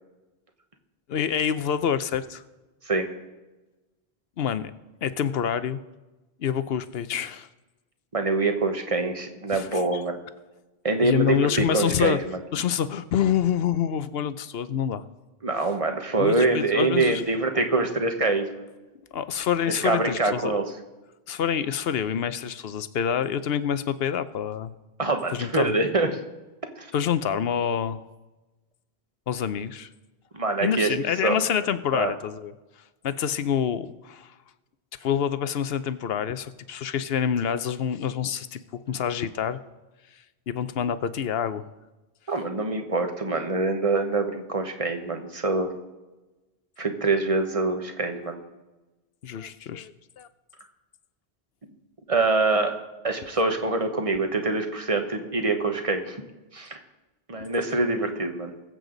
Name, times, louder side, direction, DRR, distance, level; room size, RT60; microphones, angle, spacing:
voice 1, 1.1-2.4 4.4-4.7 5.0-5.8 6.4-7.5 9.5-10.0 11.0-15.0 16.2-17.2 19.1-20.6 21.3-24.7 25.3-25.7 26.9-28.0 29.3-29.9 30.6-32.5 33.0-34.3 35.0-38.6 38.9-39.6 40.5-41.6 49.2-49.9 50.2-50.3 57.4-57.5, left 8 dB, 75° left, 13 dB, 0.9 m, -27 dB
voice 2, 8.1-10.2 10.8-12.4 15.4-18.5 19.8-20.7 25.0-26.1 26.8-26.9 30.3-30.9 31.2-31.3 31.9-32.1 42.3-45.7 46.8-48.4 52.1-52.7 53.0-56.2 56.5-56.8 57.3-58.5, right 3 dB, 35° right, 5 dB, 1.3 m, -25 dB
21.0 x 7.8 x 3.9 m, 1.1 s
omnidirectional pair, 1.0 m